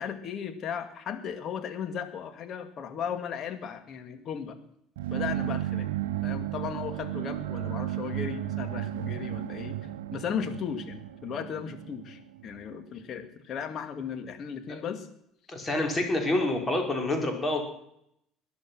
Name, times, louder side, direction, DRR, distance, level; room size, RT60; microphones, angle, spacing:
voice 1, 0.0-4.6 5.1-5.9 6.2-9.8 10.1-15.1, left 7 dB, 50° left, 8 dB, 2.3 m, -36 dB
sound 1, 5.0-12.7, right 13 dB, 80° right, 0.7 m, -34 dB
voice 2, 15.5-17.6, left 2 dB, 25° left, 3 dB, 5.0 m, -27 dB
20.5 x 10.5 x 6.2 m, 0.75 s
hypercardioid pair, 60°, 0 cm